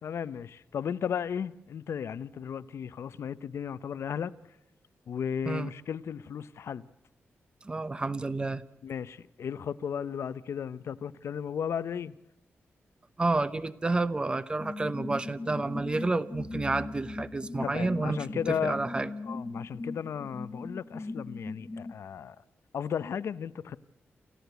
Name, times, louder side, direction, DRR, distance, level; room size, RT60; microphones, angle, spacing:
voice 1, 0.0-4.3 5.1-6.9 8.8-12.1 17.6-18.8 19.3-22.4 22.7-23.8, left 8 dB, 75° left, 0.7 m, -35 dB
voice 2, 7.6-8.6 13.2-18.3 18.6-19.1, right 3 dB, 20° right, 0.8 m, -30 dB
sound 1, 14.6-21.9, left 3 dB, 25° left, 0.7 m, -39 dB
28.0 x 14.5 x 8.1 m
wide cardioid pair, 145°, 5 cm